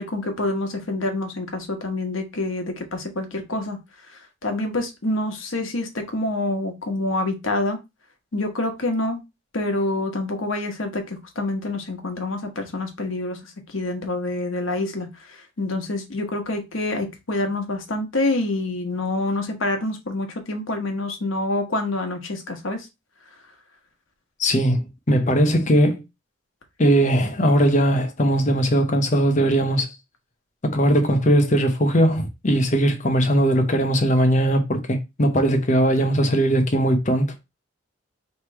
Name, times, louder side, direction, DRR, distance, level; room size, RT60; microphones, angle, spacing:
voice 1, 0.0-3.8 4.4-7.8 8.3-9.2 9.5-13.4 13.7-22.9, left 2 dB, 80° left, 1.1 m, -27 dB
voice 2, 24.4-26.0 26.8-29.9 30.6-37.3, equal, 35° left, 0.8 m, -19 dB
3.1 x 3.0 x 4.6 m
head